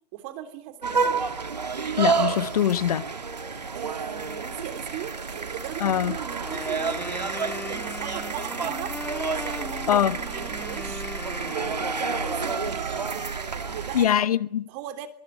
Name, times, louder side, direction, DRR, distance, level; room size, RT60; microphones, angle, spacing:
voice 1, 0.1-1.2 3.7-7.2 7.6-9.0 9.4-11.1 11.5-14.2 14.7-15.1, right 12 dB, 40° right, 3.5 m, -38 dB
sound 1, 0.8-14.1, right 5 dB, 85° right, 2.1 m, -30 dB
voice 2, 2.0-3.1 5.8-6.1 9.9-10.1 13.9-14.7, left 10 dB, 65° left, 1.3 m, -22 dB
Wind instrument woodwind instrument, 6.4-12.7, left 4 dB, 10° left, 1.6 m, -38 dB
24.5 x 24.0 x 7.8 m
figure-of-eight pair, 110°, 21 cm